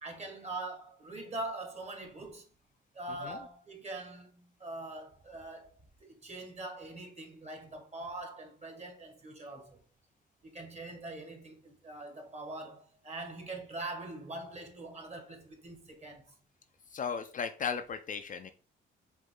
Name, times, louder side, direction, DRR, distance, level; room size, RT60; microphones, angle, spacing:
voice 1, 0.0-2.5 2.9-5.7 6.0-9.8 10.4-16.3, right 2 dB, 35° right, 1.6 m, -43 dB
voice 2, 16.9-18.5, left 6 dB, 40° left, 0.5 m, -35 dB
5.1 x 2.7 x 3.8 m
cardioid pair, 90°, 20 cm